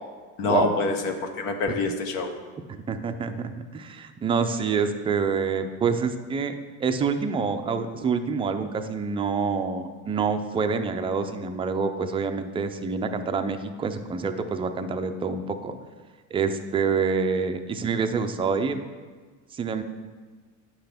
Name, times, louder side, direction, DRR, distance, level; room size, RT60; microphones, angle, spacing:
voice 1, 0.4-2.3, left 3 dB, 70° left, 5 dB, 1.2 m, -26 dB
voice 2, 2.7-6.5 6.8-15.8 16.3-18.8 19.5-19.8, right 5 dB, 15° right, 7 dB, 0.3 m, -27 dB
9.7 x 5.7 x 3.5 m, 1.4 s
supercardioid pair, 105°, 41 cm